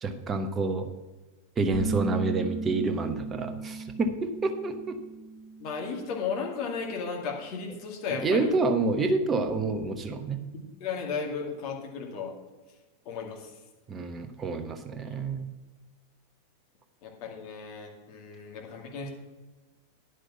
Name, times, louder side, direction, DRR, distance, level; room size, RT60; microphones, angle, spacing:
voice 1, 0.0-0.9 1.6-5.0 8.2-10.4 13.9-15.5, right 3 dB, 20° right, 7 dB, 1.1 m, -28 dB
sound 1, 1.7-7.1, right 4 dB, 15° left, 3.0 m, -37 dB
voice 2, 5.6-8.5 10.5-12.3 13.0-13.5 15.1-15.2 17.0-19.1, left 5 dB, 45° left, 0 dB, 2.4 m, -35 dB
10.0 x 6.4 x 5.8 m, 1.3 s
figure-of-eight pair, 90°, 0 cm